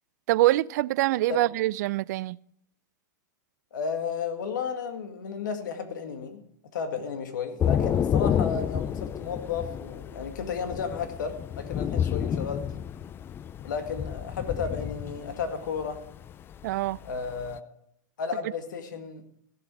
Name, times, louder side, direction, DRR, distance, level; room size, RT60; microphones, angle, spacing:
voice 1, 0.3-2.4 16.6-17.0, right 17 dB, 65° right, 0.4 m, -24 dB
voice 2, 3.7-6.4 6.7-12.7 13.6-16.0 17.0-17.6 18.2-19.2, left 6 dB, 80° left, 2.0 m, -33 dB
Thunder / Rain, 7.6-17.6, left 9 dB, 20° left, 0.4 m, -30 dB
15.5 x 7.4 x 4.7 m
hypercardioid pair, 125°, 10 cm